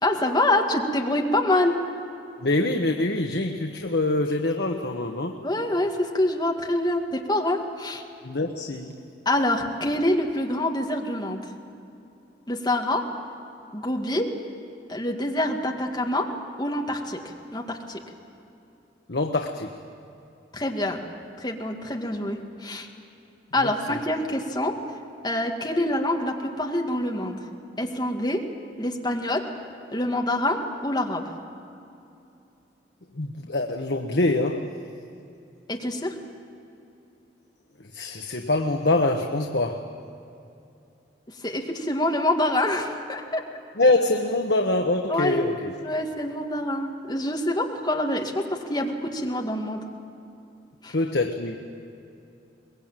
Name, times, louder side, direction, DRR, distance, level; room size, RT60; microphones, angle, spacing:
voice 1, 0.0-1.8 5.4-8.0 9.3-11.5 12.5-13.1 13.7-14.4 14.9-16.3 16.6-17.2 17.5-18.0 20.5-21.0 21.4-22.9 23.5-24.8 25.2-27.4 27.8-28.5 28.8-29.5 29.9-31.3 35.7-36.2 41.3-43.4 45.1-45.5 45.8-49.9 50.8-51.0, left 1 dB, 25° left, 1 dB, 2.0 m, -26 dB
voice 2, 2.4-5.4 8.2-8.9 19.1-19.7 23.9-24.0 33.1-34.7 37.9-39.9 43.8-45.7 50.9-51.7, left 2 dB, 65° left, 3 dB, 1.2 m, -24 dB
23.0 x 20.5 x 9.0 m, 2.7 s
head